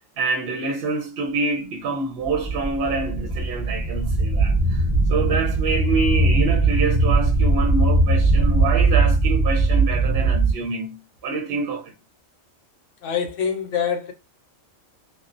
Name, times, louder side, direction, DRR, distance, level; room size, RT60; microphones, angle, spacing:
voice 1, 0.2-4.8 5.1-11.0 11.2-11.9, right 3 dB, 55° right, 0.7 m, -26 dB
sound 1, 2.2-10.5, right 2 dB, 10° left, 0.9 m, -20 dB
voice 2, 13.0-14.1, left 7 dB, 70° left, 0.9 m, -25 dB
2.6 x 2.1 x 2.4 m
omnidirectional pair, 1.4 m